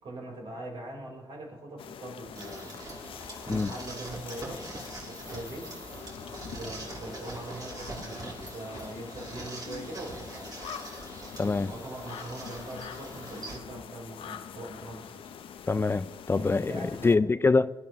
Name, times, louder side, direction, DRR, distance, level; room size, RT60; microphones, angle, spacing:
voice 1, 0.0-2.5 3.4-4.7 5.0-5.8 6.4-10.6 11.3-15.2 16.3-17.2, right 2 dB, 80° right, 3.6 m, -42 dB
sound 1, 1.8-17.2, left 8 dB, 85° left, 0.6 m, -44 dB
sound 2, 2.3-13.6, right 2 dB, 45° right, 2.5 m, -43 dB
voice 2, 11.4-11.7 15.7-17.7, left 3 dB, 25° left, 0.3 m, -25 dB
20.0 x 10.5 x 2.8 m
cardioid pair, 75°, 9 cm